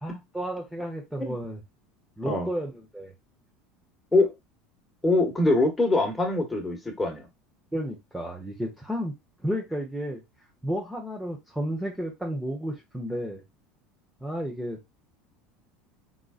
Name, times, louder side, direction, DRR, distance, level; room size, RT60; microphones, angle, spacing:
voice 1, 0.0-1.6 2.2-3.1 7.7-9.1 9.4-10.2 10.6-13.4 14.2-14.8, equal, 5° right, -1 dB, 1.2 m, -32 dB
voice 2, 5.0-7.3, left 2 dB, 15° left, 2 dB, 1.7 m, -23 dB
3.8 x 3.7 x 2.5 m, 0.20 s
hypercardioid pair, 75°, 0 cm